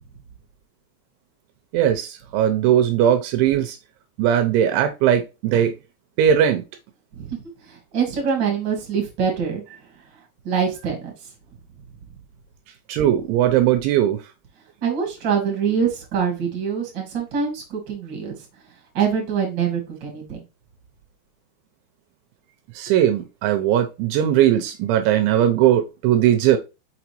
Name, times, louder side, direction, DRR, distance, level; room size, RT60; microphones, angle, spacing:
voice 1, 1.7-3.8 4.2-5.7 6.2-6.6 12.9-14.2 22.7-26.6, right 10 dB, 85° right, 2.9 m, -19 dB
voice 2, 7.2-9.6 10.4-11.1 14.8-18.4 18.9-20.4, right 7 dB, 35° right, 2.1 m, -24 dB
5.9 x 5.9 x 3.0 m
omnidirectional pair, 5.6 m